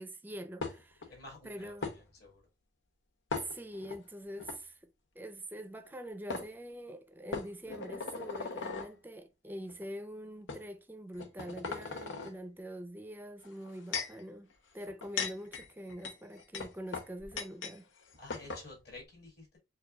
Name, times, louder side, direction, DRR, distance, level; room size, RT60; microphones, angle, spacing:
voice 1, 0.0-1.1 1.4-1.9 3.4-4.9 5.1-14.5 14.7-17.9, equal, 10° right, 0.5 m, -44 dB
sound 1, 0.6-1.1 1.8-2.0 3.3-4.0 4.4-4.6 5.9-6.0 6.3-6.5 7.3-8.9 9.7-9.8 10.5-10.6 11.1-12.3 13.4-14.2 14.9-17.8 18.0-18.1 18.3-18.7, left 4 dB, 90° left, 0.8 m, -38 dB
voice 2, 1.1-2.4 18.2-19.6, left 2 dB, 60° left, 2.4 m, -51 dB
6.9 x 2.3 x 2.2 m
head